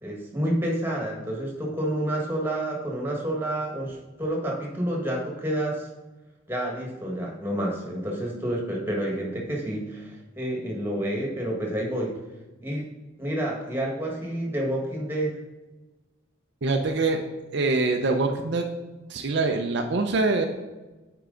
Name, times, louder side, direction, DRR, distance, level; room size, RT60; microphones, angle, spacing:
voice 1, 0.0-5.8 6.5-12.2 12.6-12.9 13.2-15.4, right 1 dB, 10° right, -1 dB, 1.4 m, -29 dB
voice 2, 16.6-17.2 17.5-18.7 19.1-20.4, right 3 dB, 60° right, 4 dB, 0.5 m, -24 dB
9.0 x 4.6 x 3.8 m, 1.2 s
head